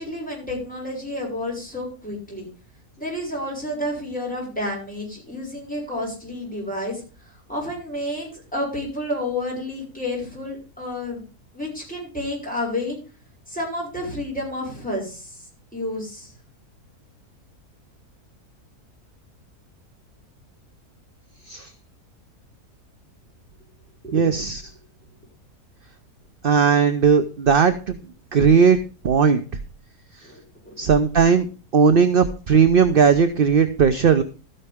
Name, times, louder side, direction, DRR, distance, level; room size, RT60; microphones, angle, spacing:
voice 1, 0.0-2.5 3.0-7.0 7.5-11.2 11.5-13.0 13.5-15.4 15.7-16.3 24.0-24.2 30.2-30.9 31.8-31.9, left 1 dB, 5° left, -2 dB, 6.5 m, -30 dB
voice 2, 24.1-24.6 26.4-27.9 28.3-28.8 29.0-29.4 30.8-31.5 31.7-34.2, right 6 dB, 50° right, 9 dB, 0.7 m, -17 dB
13.5 x 9.9 x 3.6 m, 0.35 s
omnidirectional pair, 1.7 m